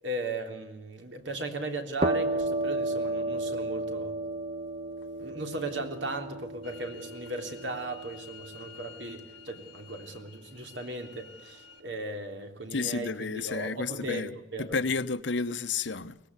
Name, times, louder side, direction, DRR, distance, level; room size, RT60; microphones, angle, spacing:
voice 1, 0.0-4.2 5.2-14.7, right 2 dB, 90° right, 3.4 m, -37 dB
sound 1, 2.0-9.5, right 2 dB, 35° right, 1.1 m, -33 dB
sound 2, 6.6-11.8, left 8 dB, 35° left, 3.5 m, -51 dB
voice 2, 12.7-16.2, left 4 dB, 80° left, 1.0 m, -31 dB
23.5 x 19.0 x 8.2 m
head